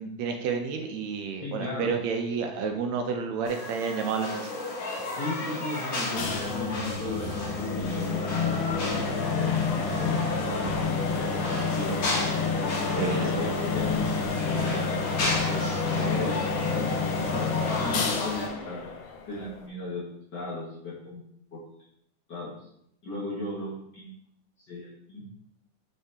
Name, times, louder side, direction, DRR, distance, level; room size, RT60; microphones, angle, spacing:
voice 1, 0.0-4.6 13.0-13.5, right 5 dB, 75° right, 4 dB, 1.8 m, -30 dB
voice 2, 1.4-2.0 5.1-9.3 9.8-12.2 12.8-18.8 19.3-20.0 20.3-21.3 21.5-21.6 22.3-22.5 23.0-24.1 24.7-25.2, left 1 dB, 45° left, -6 dB, 1.7 m, -36 dB
sound 1, 3.4-18.5, left 2 dB, 60° left, 2.6 m, -34 dB
sound 2, 6.2-19.7, left 5 dB, 90° left, 2.4 m, -29 dB
7.0 x 5.6 x 2.8 m, 0.73 s
omnidirectional pair, 3.3 m